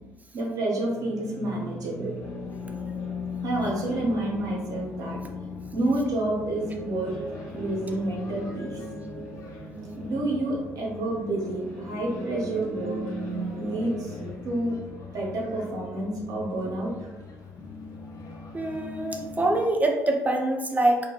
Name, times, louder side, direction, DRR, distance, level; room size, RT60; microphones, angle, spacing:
voice 1, 0.3-2.1 3.4-5.2 5.7-7.1 7.5-8.8 10.0-13.0 13.6-14.2 14.4-14.8 15.1-17.1, right 1 dB, 50° right, -2 dB, 0.8 m, -29 dB
sound 1, 0.8-14.3, right 2 dB, 75° left, 1.0 m, -40 dB
sound 2, 2.2-19.6, left 5 dB, 45° left, 0.5 m, -41 dB
voice 2, 18.5-21.0, right 1 dB, 20° right, 2 dB, 0.4 m, -24 dB
2.3 x 2.1 x 2.9 m, 1.1 s
figure-of-eight pair, 50°, 8 cm